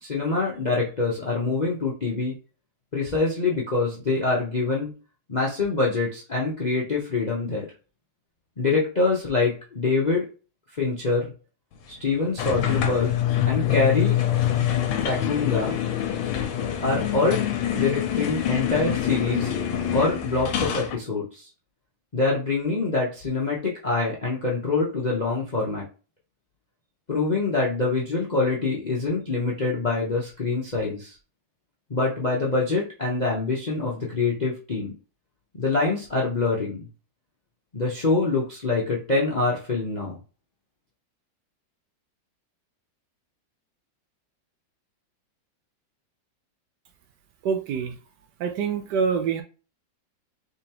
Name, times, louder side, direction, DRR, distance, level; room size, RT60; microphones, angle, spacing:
voice 1, 0.0-2.3 2.9-4.9 5.3-7.7 8.6-10.3 10.8-11.3 12.0-13.1 13.4-14.2 15.0-15.8 16.8-17.4 17.7-19.5 19.9-21.5 22.1-25.9 27.1-31.2 31.9-34.9 35.5-36.9 37.7-40.2, left 3 dB, 45° left, 0.5 m, -25 dB
sound 1, 12.4-21.0, left 10 dB, 90° left, 1.4 m, -25 dB
voice 2, 47.4-48.0 48.4-49.4, right 6 dB, 70° right, 1.1 m, -25 dB
3.8 x 3.4 x 2.9 m
omnidirectional pair, 2.0 m